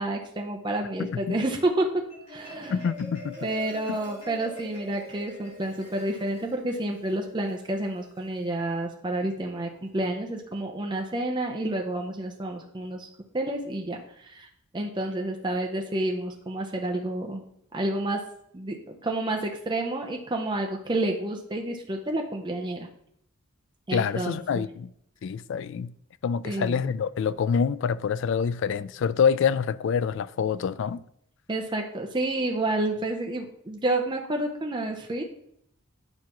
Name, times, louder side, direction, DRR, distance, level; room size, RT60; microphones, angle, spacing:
voice 1, 0.0-2.0 2.3-2.8 3.4-13.1 13.3-14.5 14.7-17.4 17.7-18.2 18.5-22.9 23.9-24.6 26.4-26.8 31.5-35.2, right 1 dB, 20° right, 0.6 m, -29 dB
voice 2, 1.0-1.4 2.7-3.4 3.9-4.0 23.9-24.9 25.2-25.9 26.2-31.0, left 6 dB, 60° left, 0.3 m, -26 dB
Marimba xylophone, 1.9-8.4, equal, 30° left, 3.1 m, -44 dB
9.7 x 5.7 x 3.0 m
head